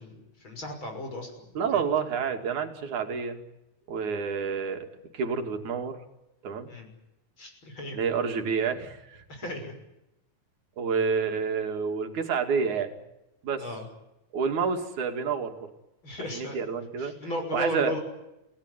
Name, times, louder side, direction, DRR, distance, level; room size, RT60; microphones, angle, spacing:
voice 1, 0.0-1.8 6.7-6.9 7.4-8.0 9.3-9.7 13.6-13.9 16.0-16.6 17.0-18.0, left 1 dB, 40° left, 4 dB, 7.0 m, -35 dB
voice 2, 1.6-3.4 3.9-4.9 5.1-6.0 6.4-6.7 7.9-9.2 10.8-12.9 13.4-13.6 14.3-15.5 16.3-17.1 17.5-17.9, right 6 dB, 75° right, 5 dB, 3.9 m, -28 dB
29.0 x 18.5 x 9.7 m, 0.92 s
omnidirectional pair, 3.4 m